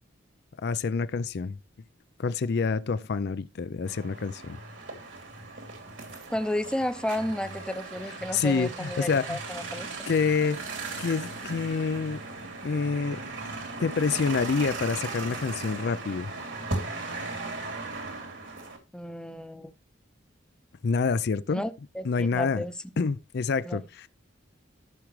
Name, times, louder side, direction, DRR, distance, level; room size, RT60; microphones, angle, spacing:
voice 1, 0.6-1.6 2.2-4.6 8.3-9.4 10.1-10.6 11.0-12.2 12.6-13.2 13.8-16.3 20.8-21.6 22.0-22.6 23.0-24.1, left 5 dB, 60° left, 0.4 m, -27 dB
sound 1, 3.9-18.8, right 3 dB, 70° right, 2.9 m, -37 dB
voice 2, 6.3-10.1 18.9-19.7 21.5-22.7 23.6-23.8, left 1 dB, 5° left, 0.7 m, -32 dB
14.0 x 6.1 x 3.2 m
head